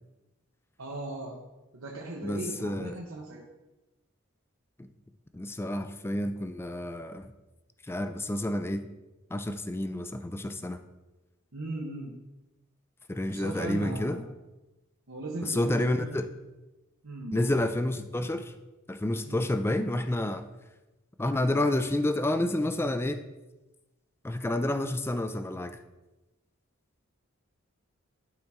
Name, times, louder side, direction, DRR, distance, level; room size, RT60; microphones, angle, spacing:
voice 1, 0.8-1.4 1.7-3.5 11.5-12.1 13.3-14.3 15.1-16.2 17.0-17.5 19.2-19.4, right 2 dB, 75° right, -2 dB, 1.1 m, -38 dB
voice 2, 2.2-3.0 4.8-4.9 5.3-7.3 7.9-8.9 9.3-10.8 13.1-14.2 15.4-16.3 17.3-18.5 18.9-20.5 21.2-23.2 24.2-25.8, left 1 dB, 10° left, 9 dB, 0.4 m, -29 dB
11.5 x 4.4 x 3.6 m, 1.0 s
head